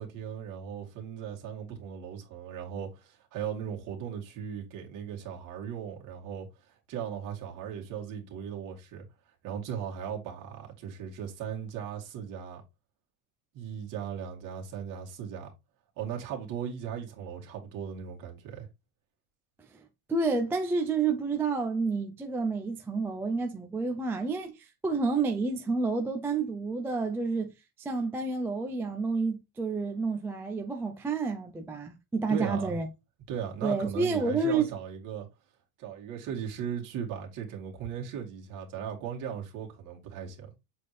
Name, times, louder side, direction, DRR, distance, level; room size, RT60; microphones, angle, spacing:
voice 1, 0.0-9.0 9.4-12.6 13.5-15.5 16.0-18.7 32.3-32.8 33.3-35.3 35.8-40.5, right 8 dB, 45° right, 2.4 m, -37 dB
voice 2, 20.1-32.9 33.6-34.7, right 4 dB, 5° right, 0.3 m, -29 dB
7.4 x 4.2 x 3.2 m
cardioid pair, 160°, 44 cm